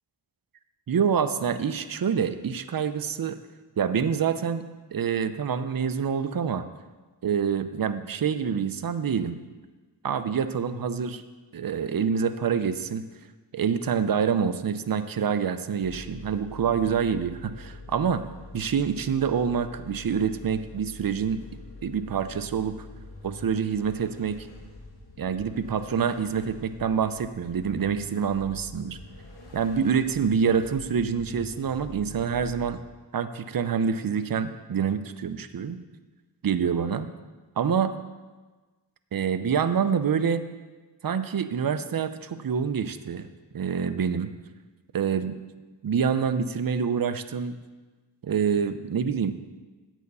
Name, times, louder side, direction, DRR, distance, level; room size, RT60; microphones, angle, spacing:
voice 1, 0.9-3.4 3.8-4.6 4.9-6.6 7.2-9.4 10.0-11.2 11.5-13.1 13.5-18.3 18.5-21.4 21.8-22.7 23.2-24.5 25.2-29.0 29.5-32.8 33.1-35.8 36.4-37.1 37.6-37.9 39.1-40.4 41.0-43.3 43.5-44.3 44.9-45.4 45.8-47.5 48.2-49.4, right 7 dB, 50° right, 11 dB, 0.7 m, -26 dB
sound 1, 15.8-32.7, left 2 dB, 60° left, 2.2 m, -45 dB
9.1 x 8.1 x 5.4 m, 1.3 s
cardioid pair, 55°, 44 cm